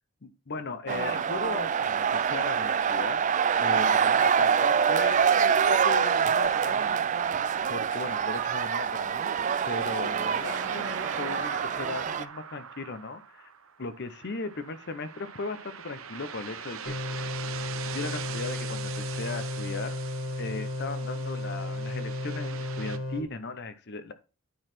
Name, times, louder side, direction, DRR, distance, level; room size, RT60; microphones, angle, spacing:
voice 1, 0.2-3.2 3.6-7.0 7.3-9.3 9.6-13.4 13.8-17.3 17.9-20.0 20.4-24.1, left 3 dB, 50° left, 11 dB, 0.8 m, -37 dB
sound 1, 0.9-12.2, right 7 dB, 35° right, 0.3 m, -25 dB
sound 2, 6.0-23.0, right 7 dB, 65° right, 0.8 m, -42 dB
sound 3, 16.9-23.2, left 2 dB, 70° left, 2.2 m, -34 dB
9.4 x 4.1 x 4.4 m, 0.33 s
head